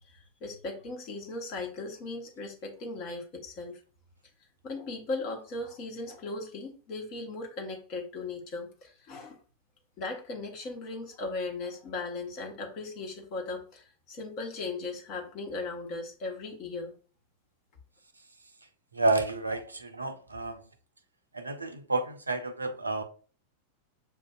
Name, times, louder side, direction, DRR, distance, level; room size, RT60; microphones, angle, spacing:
voice 1, 0.1-3.8 4.6-9.4 10.0-16.9, left 3 dB, 40° left, 1 dB, 1.2 m, -37 dB
voice 2, 19.0-20.5 21.4-23.0, right 2 dB, 80° right, 8 dB, 0.4 m, -30 dB
6.8 x 2.5 x 2.3 m, 0.39 s
figure-of-eight pair, 90°, 0 cm